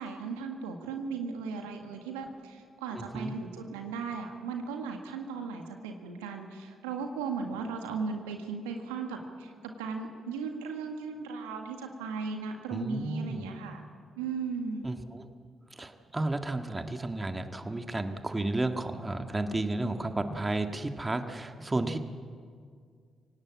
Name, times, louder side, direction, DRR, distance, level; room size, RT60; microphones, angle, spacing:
voice 1, 0.0-9.5 9.8-13.8 14.2-14.9, right 5 dB, 85° right, 4 dB, 1.7 m, -36 dB
voice 2, 2.9-3.3 12.7-13.5 14.8-15.3 15.8-22.0, right 2 dB, 25° right, 6 dB, 1.7 m, -32 dB
25.5 x 17.5 x 8.6 m, 2.1 s
hypercardioid pair, 40°, 0 cm